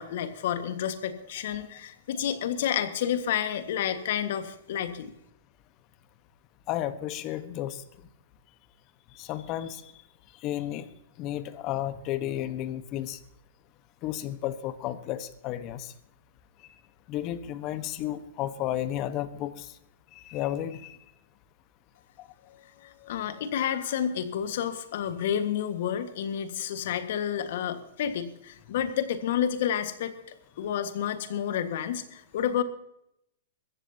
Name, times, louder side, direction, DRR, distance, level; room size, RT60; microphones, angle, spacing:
voice 1, 0.0-5.1 22.8-30.1 30.6-32.6, left 9 dB, 60° left, 9 dB, 1.6 m, -30 dB
voice 2, 6.7-7.8 9.1-9.9 10.4-10.9 11.2-13.2 14.0-15.9 17.1-19.7 20.1-21.0 22.2-22.3, left 12 dB, 35° left, 13 dB, 1.2 m, -33 dB
21.5 x 15.0 x 2.8 m, 0.81 s
hypercardioid pair, 120°, 0 cm